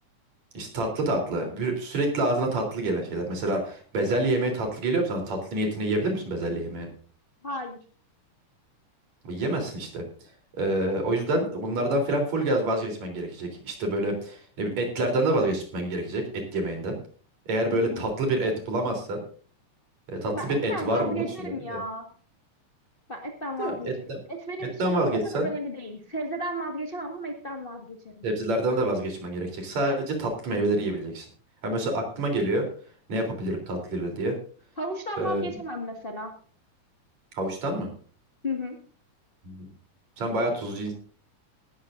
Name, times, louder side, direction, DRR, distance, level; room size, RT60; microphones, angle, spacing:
voice 1, 0.5-6.9 9.2-10.0 10.6-17.0 17.5-19.2 20.1-21.8 23.6-24.2 24.8-25.5 28.2-31.3 31.6-32.7 33.1-34.4 35.2-35.5 37.3-37.9 39.4-39.7 40.2-40.9, right 1 dB, 55° right, 3 dB, 4.8 m, -27 dB
voice 2, 7.4-7.8 17.7-18.1 20.3-22.1 23.1-23.9 24.3-28.2 34.8-36.3 38.4-38.8, equal, 25° left, 2 dB, 1.3 m, -34 dB
18.5 x 13.5 x 2.6 m, 0.42 s
omnidirectional pair, 3.7 m